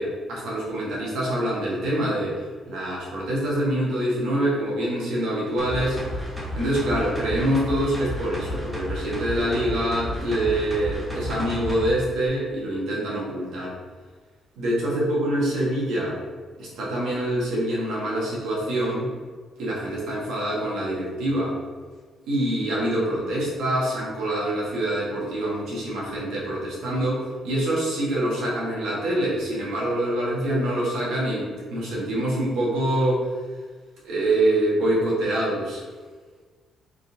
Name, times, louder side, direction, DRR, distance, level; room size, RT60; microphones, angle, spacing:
voice 1, 0.0-6.0 6.6-13.8 14.6-16.2 16.6-19.1 19.6-21.6 22.2-33.2 34.0-35.8, right 1 dB, 80° right, -5 dB, 1.4 m, -25 dB
sound 1, 5.6-11.9 12.3-12.4, left 1 dB, 10° right, 1.3 m, -32 dB
4.0 x 3.8 x 2.8 m, 1.5 s
cardioid pair, 90°, 0 cm